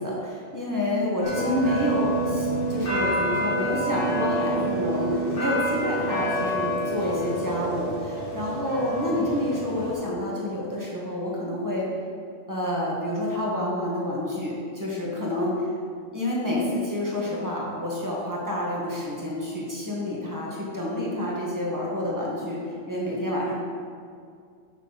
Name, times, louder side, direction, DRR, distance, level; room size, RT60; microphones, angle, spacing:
voice 1, 0.0-11.9 12.5-15.7 16.1-23.5, left 1 dB, 15° right, -5 dB, 1.7 m, -28 dB
sound 1, 1.2-9.9, right 1 dB, 45° left, 1.9 m, -28 dB
6.8 x 6.3 x 5.3 m, 2.3 s
omnidirectional pair, 1.2 m